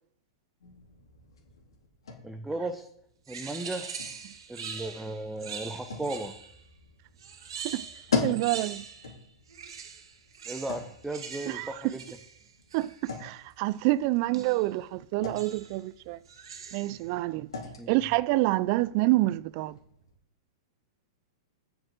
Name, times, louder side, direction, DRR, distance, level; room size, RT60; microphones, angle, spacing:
sound 1, 0.6-20.2, left 5 dB, 80° left, 3.4 m, -41 dB
voice 1, 2.2-2.9 3.3-3.9 4.5-6.3 10.5-12.0 17.8-17.9, right 2 dB, 5° right, 1.0 m, -35 dB
sound 2, 3.3-6.6 7.2-9.2 9.5-13.3 14.3-14.7 15.4-15.8 16.3-17.1, right 6 dB, 75° right, 1.6 m, -43 dB
voice 2, 8.2-8.8 11.5-11.9 12.7-16.2 16.7-17.5 17.9-19.8, right 18 dB, 50° right, 0.5 m, -27 dB
7.8 x 6.9 x 7.9 m
hypercardioid pair, 115°, 3 cm